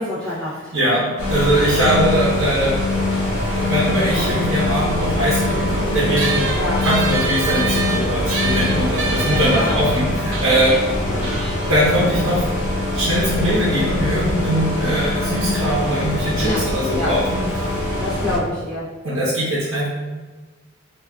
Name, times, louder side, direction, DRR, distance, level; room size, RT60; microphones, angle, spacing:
voice 1, 0.0-0.7 6.5-6.8 9.3-9.8 16.4-16.6 16.9-17.1 18.0-18.9, left 1 dB, 5° left, -10 dB, 0.5 m, -26 dB
voice 2, 0.7-2.8 3.4-6.4 6.8-10.7 11.7-12.4 12.9-17.7 19.0-19.9, equal, 80° right, -7 dB, 0.7 m, -21 dB
sound 1, 1.2-18.4, left 1 dB, 80° left, 1.0 m, -23 dB
sound 2, 6.2-13.0, right 4 dB, 60° right, 0.4 m, -28 dB
3.6 x 2.3 x 2.2 m, 1.3 s
head